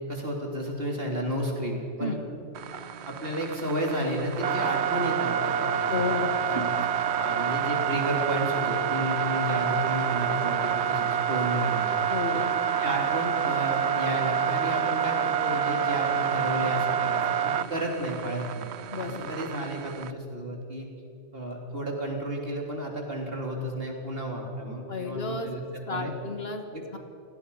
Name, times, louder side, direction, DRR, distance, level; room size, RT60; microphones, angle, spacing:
voice 1, 0.1-2.2 2.7-2.8 3.1-6.1 6.5-6.8 7.2-11.9 12.3-12.5 12.8-18.7 19.0-20.9 21.3-25.6 25.9-26.1 26.7-26.8, right 1 dB, 50° right, 0 dB, 3.7 m, -32 dB
sound 1, 2.5-20.1, right 8 dB, 70° right, 0.9 m, -28 dB
voice 2, 5.9-6.9 12.1-12.4 18.9-19.3 24.9-25.5 25.9-27.0, left 3 dB, 55° left, 5 dB, 1.9 m, -32 dB
29.0 x 18.0 x 5.6 m, 2.7 s
omnidirectional pair, 1.2 m